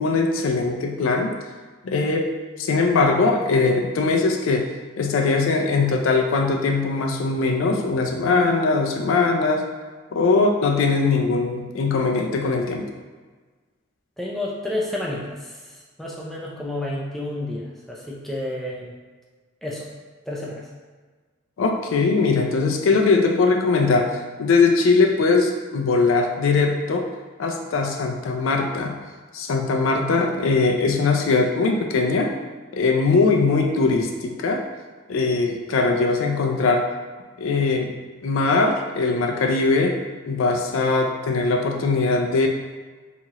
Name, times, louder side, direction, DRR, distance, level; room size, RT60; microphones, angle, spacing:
voice 1, 0.0-1.4 1.8-2.3 2.6-4.7 5.0-9.6 10.1-12.9 21.6-24.1 24.4-27.1 27.4-29.0 29.3-32.3 32.7-34.6 35.1-36.8 37.4-37.9 38.2-40.0 40.3-42.5, left 3 dB, 85° left, 2 dB, 0.4 m, -20 dB
voice 2, 14.2-18.9 19.6-19.9 20.3-20.7, left 1 dB, ahead, -4 dB, 0.4 m, -30 dB
2.9 x 2.4 x 2.8 m, 1.4 s
head